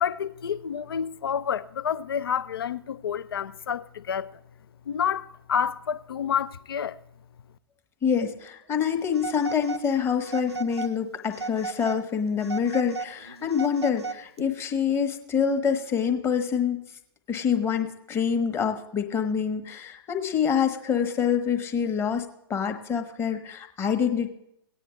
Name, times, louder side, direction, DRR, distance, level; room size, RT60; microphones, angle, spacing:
voice 1, 0.0-4.3 4.9-7.0, left 8 dB, 65° left, 0.5 m, -29 dB
voice 2, 8.0-16.8 17.3-24.3, left 7 dB, 15° left, 1.1 m, -26 dB
Telephone, 9.1-9.9 10.2-10.9 11.3-12.0 12.4-14.4, right 4 dB, 85° right, 0.6 m, -35 dB
17.5 x 9.2 x 3.1 m
figure-of-eight pair, 110°, 13 cm